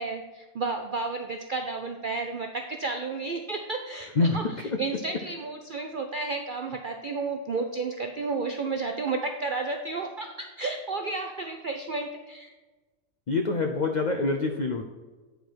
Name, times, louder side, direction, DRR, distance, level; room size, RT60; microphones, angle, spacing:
voice 1, 0.0-12.5, right 3 dB, 70° right, 5 dB, 0.4 m, -32 dB
voice 2, 13.3-14.8, left 3 dB, 70° left, 5 dB, 0.4 m, -25 dB
8.9 x 4.7 x 4.5 m, 1.3 s
omnidirectional pair, 1.5 m